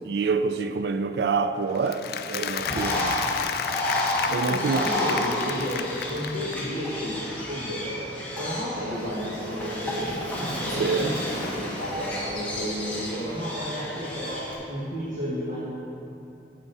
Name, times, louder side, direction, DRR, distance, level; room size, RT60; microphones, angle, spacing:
voice 1, 0.0-3.4 4.3-4.9 10.7-11.2, right 4 dB, 65° right, 0.3 m, -27 dB
Applause, 1.7-6.8, left 8 dB, 55° left, 0.3 m, -32 dB
Bird, 2.6-14.6, left 1 dB, 10° left, 1.3 m, -31 dB
voice 2, 4.4-8.0 8.3-10.2 10.6-14.4 14.7-15.6, equal, 45° right, 1.6 m, -32 dB
9.0 x 7.7 x 4.1 m
head